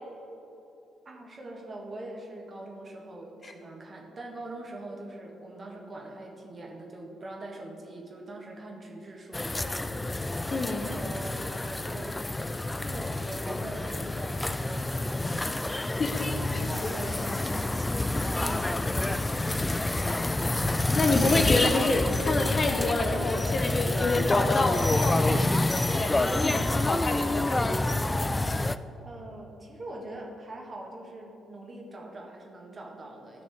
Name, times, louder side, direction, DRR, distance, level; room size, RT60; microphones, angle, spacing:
voice 1, 1.1-12.6 12.8-17.9 18.3-19.5 29.0-33.4, right 1 dB, 35° right, 0 dB, 1.8 m, -43 dB
sound 1, 9.3-28.8, left 2 dB, 15° left, 0.3 m, -28 dB
voice 2, 10.5-10.9 16.0-16.6 20.9-27.9, left 3 dB, 40° left, 5 dB, 0.8 m, -28 dB
15.5 x 6.1 x 3.7 m, 2.9 s
figure-of-eight pair, 45°, 0 cm